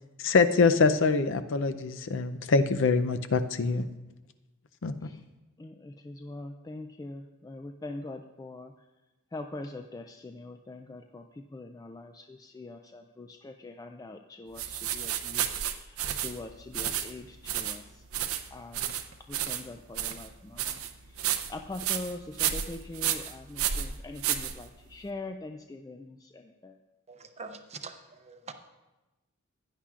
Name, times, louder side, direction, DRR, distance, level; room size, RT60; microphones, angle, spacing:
voice 1, 0.2-3.9 4.8-5.1, left 4 dB, 65° left, 9 dB, 0.6 m, -24 dB
voice 2, 5.6-8.7 9.3-18.0 18.5-18.9 19.3-20.8 21.1-26.8, left 2 dB, 15° left, 6 dB, 0.3 m, -43 dB
sound 1, 14.6-25.0, right 10 dB, 80° right, 0.6 m, -32 dB
voice 3, 27.1-27.9 28.3-28.5, right 5 dB, 30° right, 7 dB, 0.7 m, -43 dB
16.0 x 9.9 x 2.4 m, 1.1 s
head